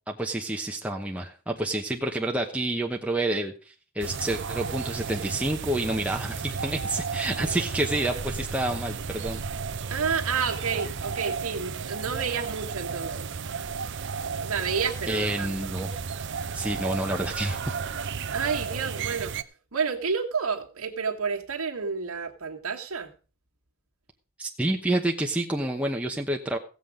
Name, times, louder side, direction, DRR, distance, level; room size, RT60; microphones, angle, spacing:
voice 1, 0.1-9.4 15.1-15.9 16.5-17.7 24.4-26.6, right 1 dB, 5° right, 1 dB, 0.9 m, -29 dB
sound 1, 4.0-19.4, right 5 dB, 55° right, 0.7 m, -33 dB
voice 2, 9.9-13.3 14.4-15.7 18.3-19.4 19.7-23.1, right 5 dB, 75° right, 1 dB, 1.8 m, -30 dB
16.5 x 7.7 x 5.0 m, 0.36 s
head